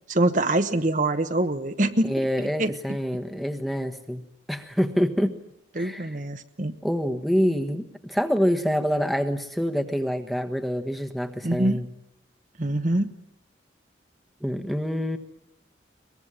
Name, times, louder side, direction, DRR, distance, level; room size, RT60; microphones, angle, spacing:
voice 1, 0.1-2.1 2.4-2.7 5.7-6.7 11.4-11.8 12.6-13.1, right 1 dB, 40° right, 8 dB, 1.1 m, -24 dB
voice 2, 2.1-4.2 4.5-5.3 5.7-6.1 6.8-11.9 14.4-15.2, equal, ahead, 5 dB, 1.3 m, -26 dB
23.0 x 21.0 x 9.9 m, 0.81 s
head